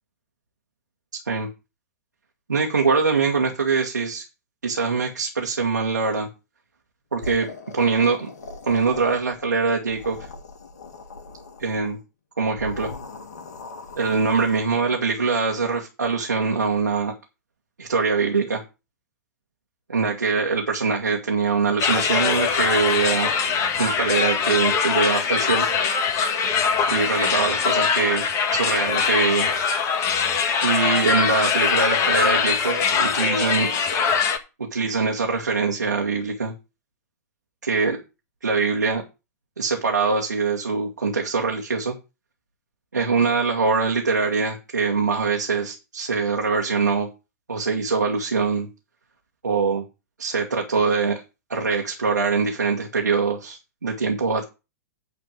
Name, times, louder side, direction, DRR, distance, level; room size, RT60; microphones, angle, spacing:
voice 1, 2.5-4.2 4.6-6.3 7.1-7.5 7.7-8.3 8.6-10.3 11.6-12.0 12.4-12.9 14.0-17.1 17.8-18.6 19.9-23.3 23.8-25.6 26.9-28.2 28.5-29.5 30.6-33.7 34.6-36.5 37.6-38.0 38.4-39.0 39.6-41.9 42.9-47.1 47.5-48.7 49.4-49.8 50.2-51.2 51.5-54.4, right 4 dB, 85° right, 0 dB, 1.8 m, -23 dB
sound 1, 7.2-9.5 9.8-11.9 12.5-14.8, left 3 dB, 70° left, 1.9 m, -40 dB
sound 2, 21.8-34.4, left 6 dB, 35° left, 1.7 m, -22 dB
9.6 x 4.4 x 7.5 m, 0.28 s
hypercardioid pair, 105°, 9 cm